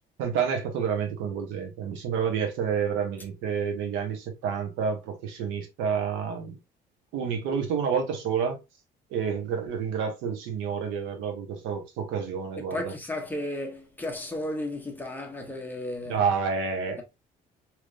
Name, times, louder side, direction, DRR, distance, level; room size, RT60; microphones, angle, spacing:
voice 1, 0.2-6.6 7.1-8.6 9.1-12.9 16.1-17.0, right 6 dB, 90° right, 1.1 m, -29 dB
voice 2, 12.7-16.2, left 1 dB, 10° left, 0.9 m, -34 dB
3.4 x 3.0 x 2.4 m
cardioid pair, 130°, 19 cm